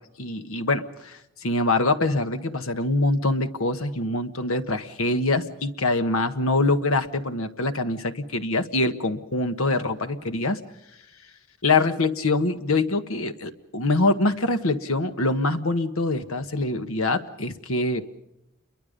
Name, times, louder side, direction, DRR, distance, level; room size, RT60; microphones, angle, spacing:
voice 1, 0.2-10.6 11.6-18.0, left 2 dB, 90° left, 9 dB, 1.5 m, -24 dB
29.0 x 23.0 x 5.3 m, 0.86 s
head